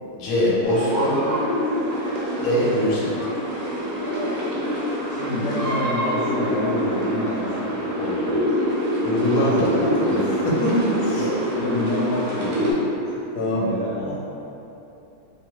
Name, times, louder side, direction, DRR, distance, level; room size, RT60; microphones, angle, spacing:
voice 1, 0.2-1.2 2.4-3.1 9.0-11.3 11.6-11.7 13.3-13.7, left 1 dB, 65° left, -6 dB, 1.0 m, -22 dB
sound 1, 0.6-12.7, equal, 85° right, 1.5 m, -25 dB
voice 2, 5.1-8.5 11.2-12.8 13.5-14.1, left 1 dB, 85° left, -9 dB, 0.8 m, -28 dB
3.3 x 2.3 x 2.9 m, 2.9 s
omnidirectional pair, 2.2 m